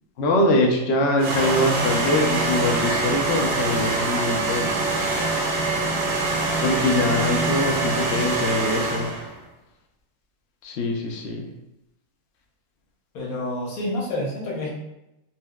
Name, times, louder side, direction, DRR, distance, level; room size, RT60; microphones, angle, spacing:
voice 1, 0.2-4.8 6.6-9.1 10.6-11.5, left 1 dB, 65° left, 0 dB, 0.7 m, -23 dB
sound 1, 1.2-9.3, right 2 dB, 60° right, 0.6 m, -24 dB
voice 2, 13.1-14.7, left 1 dB, 90° left, -3 dB, 1.3 m, -28 dB
4.1 x 2.1 x 2.2 m, 0.88 s
omnidirectional pair, 1.5 m